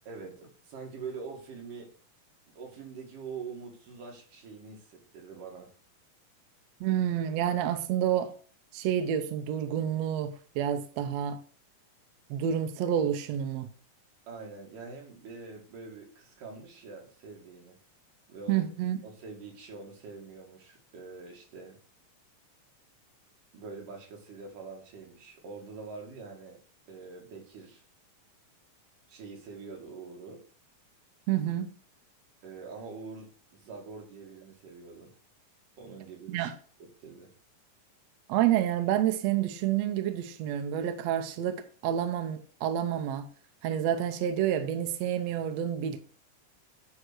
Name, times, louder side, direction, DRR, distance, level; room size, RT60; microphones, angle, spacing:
voice 1, 0.1-1.9 2.6-5.7 14.3-17.8 18.3-18.6 19.0-21.8 23.5-26.6 26.9-27.8 29.1-30.4 32.4-35.1 35.8-36.5 36.8-37.3, right 4 dB, 85° right, 3.7 m, -44 dB
voice 2, 6.8-8.3 8.7-11.4 12.3-13.7 18.5-19.0 31.3-31.7 36.3-36.5 38.3-43.3 43.6-46.0, right 10 dB, 70° right, 1.8 m, -29 dB
9.6 x 3.9 x 6.2 m
omnidirectional pair, 3.7 m